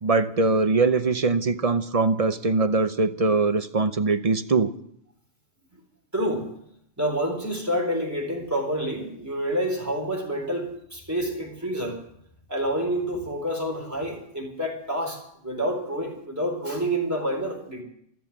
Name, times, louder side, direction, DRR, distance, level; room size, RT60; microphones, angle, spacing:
voice 1, 0.0-4.7, right 3 dB, 35° right, 10 dB, 0.7 m, -22 dB
voice 2, 6.1-6.5 7.0-12.0 12.5-17.8, equal, 15° right, 2 dB, 4.0 m, -28 dB
14.5 x 13.5 x 7.4 m, 0.71 s
omnidirectional pair, 1.3 m